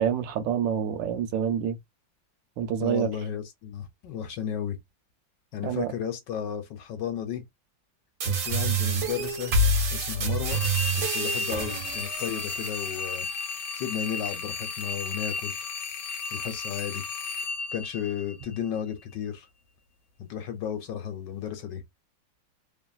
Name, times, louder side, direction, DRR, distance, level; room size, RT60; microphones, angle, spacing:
voice 1, 0.0-1.8 2.6-3.1 5.6-5.9, right 8 dB, 75° right, 1.2 m, -27 dB
voice 2, 2.8-4.8 5.5-7.4 8.2-9.6 9.9-10.6 10.9-13.3 13.8-15.6 16.3-17.0 17.7-19.5 20.2-21.8, left 9 dB, 70° left, 1.2 m, -33 dB
sound 1, 8.2-13.2, right 2 dB, 60° right, 0.9 m, -27 dB
sound 2, 10.5-18.7, left 4 dB, 90° left, 1.4 m, -34 dB
3.1 x 2.5 x 2.3 m
omnidirectional pair, 2.1 m